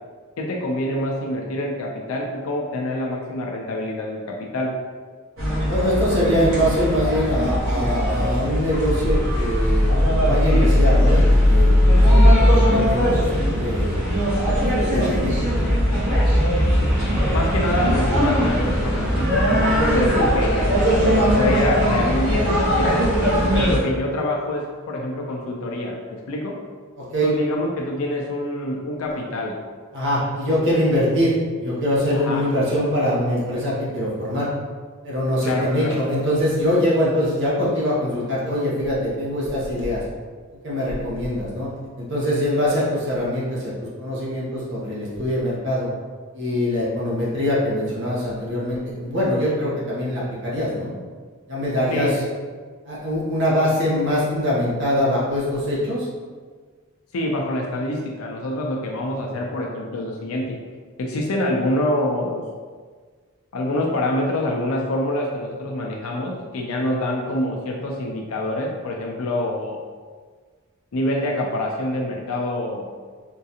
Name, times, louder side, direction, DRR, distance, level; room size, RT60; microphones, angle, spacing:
voice 1, 0.4-4.7 17.3-20.9 21.2-23.0 23.5-26.6 27.2-29.6 32.1-32.4 35.4-36.0 51.9-52.2 57.1-60.6 61.0-62.5 63.5-69.8 70.9-72.9, left 1 dB, 85° left, 0 dB, 0.4 m, -26 dB
sound 1, 5.4-23.8, equal, 75° right, 1.2 m, -19 dB
voice 2, 5.7-9.9 10.2-14.0 14.8-15.4 27.0-27.3 29.9-34.5 35.0-40.0 40.6-41.7 42.0-43.7 44.0-45.9 46.3-50.9 51.5-52.2 52.9-56.1, equal, 60° right, -6 dB, 0.8 m, -23 dB
3.7 x 2.4 x 2.8 m, 1.5 s
head